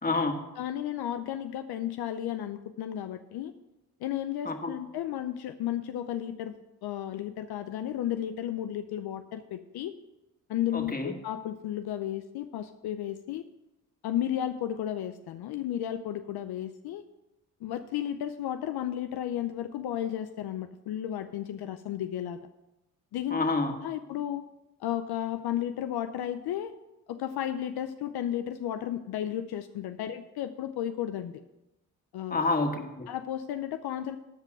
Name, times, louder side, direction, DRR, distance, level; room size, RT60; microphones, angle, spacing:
voice 1, 0.0-0.4 4.5-4.7 10.7-11.1 23.3-23.7 32.3-33.1, left 3 dB, 25° left, 4 dB, 2.0 m, -28 dB
voice 2, 0.6-3.5 4.0-6.6 6.8-9.9 10.5-13.5 14.0-17.0 17.6-22.4 23.1-23.4 23.8-24.4 24.8-26.7 27.1-31.4 32.1-32.4 33.1-34.2, left 11 dB, 75° left, 9 dB, 0.6 m, -33 dB
12.5 x 5.3 x 6.5 m, 0.96 s
supercardioid pair, 60°, 39 cm